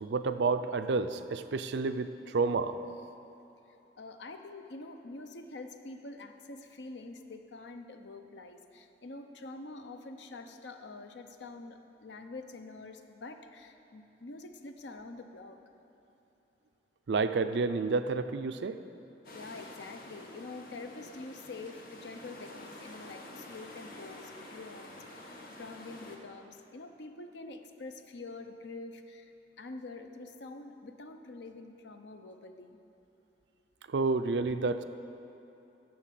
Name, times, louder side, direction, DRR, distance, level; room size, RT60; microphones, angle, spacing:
voice 1, 0.0-2.8 17.1-18.8 33.9-34.8, right 4 dB, 80° right, 10 dB, 0.4 m, -30 dB
voice 2, 4.0-15.6 19.3-32.8, left 3 dB, 85° left, 6 dB, 0.7 m, -46 dB
sound 1, 19.2-26.2, left 1 dB, 55° left, 1.1 m, -48 dB
10.5 x 6.6 x 7.6 m, 2.9 s
head